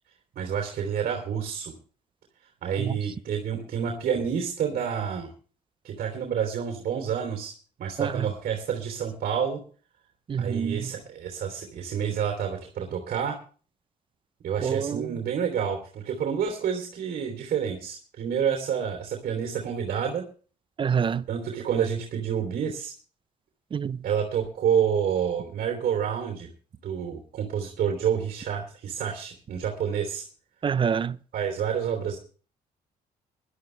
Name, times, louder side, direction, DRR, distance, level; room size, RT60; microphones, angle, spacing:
voice 1, 0.3-1.7 2.6-5.3 5.8-7.5 7.8-9.6 10.4-13.4 14.4-20.2 21.3-22.9 24.0-26.5 26.8-30.2 31.3-32.2, right 8 dB, 60° right, 3.3 m, -28 dB
voice 2, 10.3-10.9 14.6-15.1 20.8-21.3 23.7-24.0 30.6-31.2, right 7 dB, 30° right, 0.6 m, -27 dB
19.5 x 12.0 x 3.3 m
cardioid pair, 115°, 16 cm